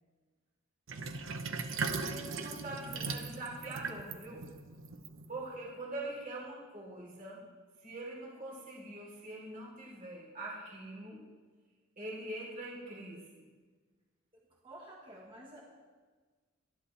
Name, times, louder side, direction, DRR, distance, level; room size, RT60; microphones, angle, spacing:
Sink (filling or washing), 0.9-5.6, right 4 dB, 65° right, 0.9 m, -39 dB
voice 1, 1.8-4.4 5.3-7.4 7.8-11.2 12.0-13.4, right 2 dB, 40° right, -4 dB, 3.6 m, -43 dB
voice 2, 14.3-15.6, right 1 dB, 25° right, -3 dB, 1.6 m, -51 dB
24.5 x 11.0 x 3.4 m, 1.4 s
head